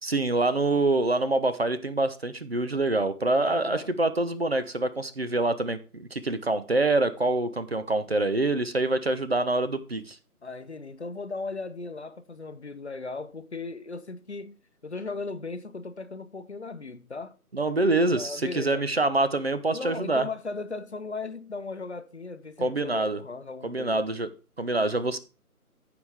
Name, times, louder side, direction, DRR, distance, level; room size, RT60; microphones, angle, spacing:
voice 1, 0.0-10.2 17.5-20.3 22.6-23.2 23.6-24.3 24.6-25.2, right 2 dB, 45° right, 0.7 m, -25 dB
voice 2, 3.3-3.9 10.4-14.6 14.8-17.3 18.1-18.9 19.7-24.0, left 3 dB, 45° left, 0.8 m, -37 dB
14.5 x 4.9 x 3.5 m
figure-of-eight pair, 160°, 45 cm